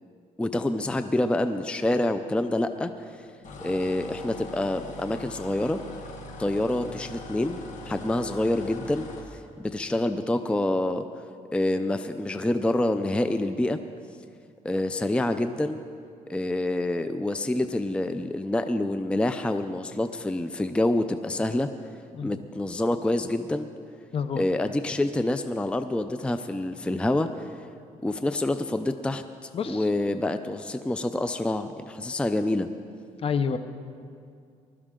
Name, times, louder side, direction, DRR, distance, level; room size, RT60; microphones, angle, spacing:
voice 1, 0.4-3.1 3.6-5.8 6.4-9.1 9.3-11.1 11.5-13.8 14.6-15.8 16.3-21.7 22.2-23.7 24.4-27.5 28.0-29.2 29.7-32.7, left 1 dB, 10° left, 9 dB, 0.4 m, -27 dB
sound 1, 3.4-9.3, left 1 dB, 65° left, 1.7 m, -42 dB
voice 2, 24.1-24.4 29.5-29.9 33.2-33.6, left 6 dB, 45° left, 10 dB, 0.7 m, -28 dB
20.0 x 12.5 x 3.7 m, 2.4 s
cardioid pair, 120°, 14 cm